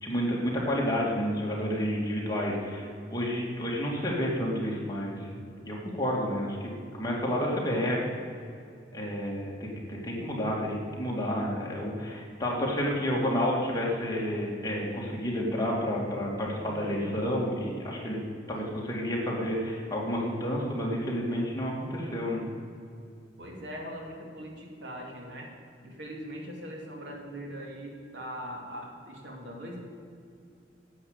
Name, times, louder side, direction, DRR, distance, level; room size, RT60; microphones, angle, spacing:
voice 1, 0.0-5.3 5.7-8.2 8.9-18.2 18.5-22.4, equal, 20° left, -3 dB, 2.4 m, -30 dB
voice 2, 16.6-17.1 18.7-19.0 23.4-25.5 25.8-29.8, equal, 70° right, 0 dB, 2.5 m, -41 dB
10.5 x 8.3 x 8.1 m, 2.5 s
head